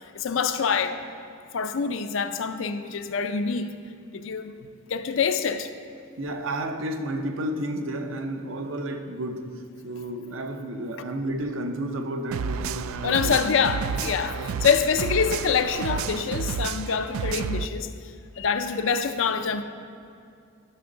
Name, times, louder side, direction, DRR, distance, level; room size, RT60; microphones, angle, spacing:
voice 1, 0.1-1.0 1.5-3.7 4.1-4.6 4.9-5.7 13.0-17.9 18.4-19.6, left 6 dB, 65° left, 0.5 m, -25 dB
voice 2, 6.2-13.6 14.3-14.5 14.8-14.9, right 1 dB, 70° right, 0.7 m, -32 dB
sound 1, 12.3-17.7, right 6 dB, 85° right, 0.3 m, -30 dB
12.0 x 6.1 x 3.9 m
head